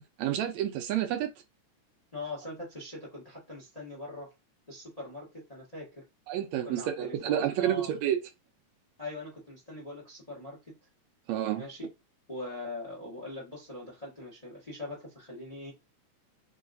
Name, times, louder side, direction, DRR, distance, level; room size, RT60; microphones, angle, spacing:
voice 1, 0.2-1.3 6.3-8.2 11.3-11.6, right 11 dB, 80° right, 1.7 m, -29 dB
voice 2, 2.1-4.3 4.7-6.0 6.6-7.9 9.0-10.8 11.6-11.9 12.3-15.7, left 2 dB, 25° left, 0.8 m, -41 dB
4.6 x 3.1 x 2.6 m
omnidirectional pair, 3.5 m